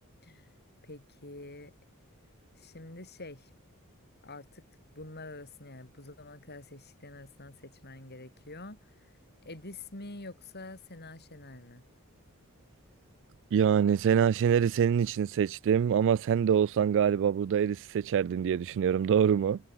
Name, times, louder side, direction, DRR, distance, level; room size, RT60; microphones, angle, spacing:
voice 1, 0.2-0.5 0.8-1.7 2.6-3.5 4.2-4.6 4.9-8.9 9.4-11.8, left 2 dB, 50° left, 6.7 m, -46 dB
voice 2, 13.5-19.6, right 8 dB, 60° right, 0.3 m, -25 dB
head